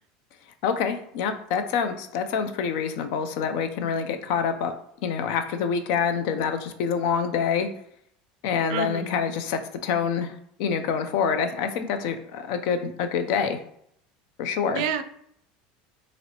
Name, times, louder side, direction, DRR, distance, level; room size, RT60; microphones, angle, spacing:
voice 1, 0.6-4.7 5.0-7.7 8.4-13.6 14.4-14.8, left 6 dB, 70° left, 8 dB, 0.4 m, -26 dB
voice 2, 8.7-9.2 14.7-15.0, right 7 dB, 75° right, 9 dB, 0.4 m, -29 dB
4.0 x 2.0 x 2.8 m, 0.70 s
supercardioid pair, 135°, 4 cm